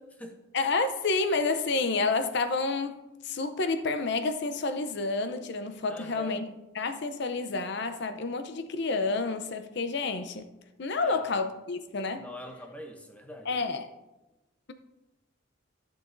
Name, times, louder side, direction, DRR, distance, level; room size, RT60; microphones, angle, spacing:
voice 1, 0.0-0.4 5.9-6.5 11.0-11.4 12.2-13.5, left 1 dB, 5° left, 0.7 m, -44 dB
voice 2, 0.5-6.5 6.7-10.5 10.8-12.3 13.5-13.9, left 3 dB, 55° left, 0.6 m, -29 dB
14.0 x 6.3 x 2.6 m
head